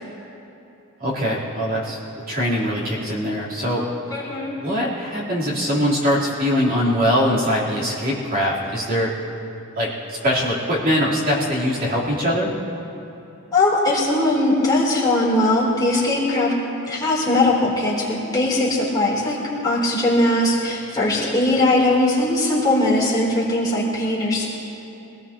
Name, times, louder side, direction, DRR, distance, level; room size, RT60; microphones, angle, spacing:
voice 1, 1.0-3.8 4.6-9.1 9.8-12.5, equal, 40° right, -8 dB, 3.8 m, -22 dB
voice 2, 4.1-4.5 13.5-16.5 16.9-19.4 19.6-24.5, left 1 dB, 20° left, -7 dB, 3.3 m, -20 dB
24.5 x 18.5 x 3.0 m, 3.0 s
head